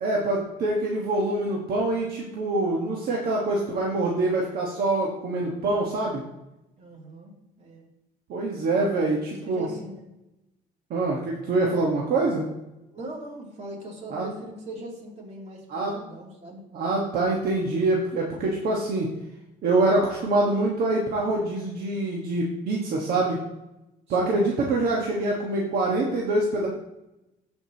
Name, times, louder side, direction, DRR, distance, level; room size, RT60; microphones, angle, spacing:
voice 1, 0.0-6.2 8.3-9.7 10.9-12.5 14.1-14.2 15.7-15.9 16.7-19.1 19.6-23.4 24.1-26.7, right 2 dB, 65° right, -2 dB, 1.4 m, -25 dB
voice 2, 6.8-7.3 7.6-7.9 8.7-10.0 12.9-16.6 24.1-24.5, right 1 dB, 40° right, -2 dB, 2.8 m, -40 dB
14.0 x 5.2 x 2.9 m, 0.93 s
cardioid pair, 110°, 17 cm